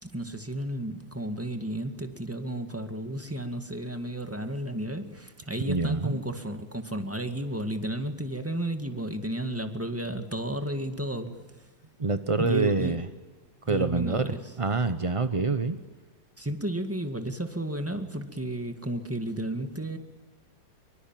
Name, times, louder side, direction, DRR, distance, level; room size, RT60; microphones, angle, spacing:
voice 1, 0.0-11.7 12.4-13.0 13.7-14.5 15.4-15.5 16.4-20.0, right 1 dB, 5° right, 7 dB, 1.8 m, -33 dB
voice 2, 5.6-6.2 12.0-13.1 13.7-14.3 14.6-15.8, right 3 dB, 40° right, 10 dB, 0.4 m, -26 dB
25.0 x 23.5 x 9.0 m, 1.4 s
omnidirectional pair, 2.1 m